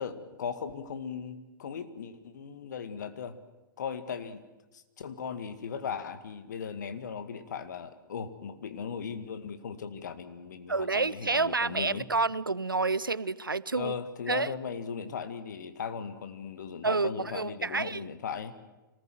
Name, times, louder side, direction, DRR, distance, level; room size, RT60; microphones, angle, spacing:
voice 1, 0.0-3.4 3.8-4.4 4.7-12.1 13.7-18.6, left 6 dB, 60° left, 10 dB, 2.0 m, -38 dB
voice 2, 10.7-13.9 14.3-14.5 16.8-18.1, right 3 dB, 80° right, 20 dB, 0.7 m, -29 dB
26.0 x 19.5 x 7.9 m, 1.1 s
figure-of-eight pair, 105°, 11 cm